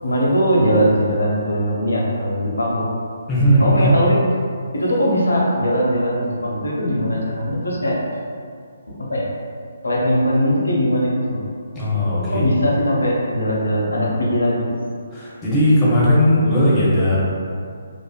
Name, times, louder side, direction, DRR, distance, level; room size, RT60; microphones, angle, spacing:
voice 1, 0.0-2.9 3.6-4.2 4.7-8.0 8.9-9.2 9.8-11.4 12.3-14.7, equal, 85° left, -4 dB, 0.6 m, -20 dB
voice 2, 3.3-4.0 11.7-12.4 15.1-17.2, equal, 15° left, -8 dB, 0.7 m, -17 dB
2.4 x 2.4 x 2.3 m, 2.2 s
figure-of-eight pair, 145°, 0 cm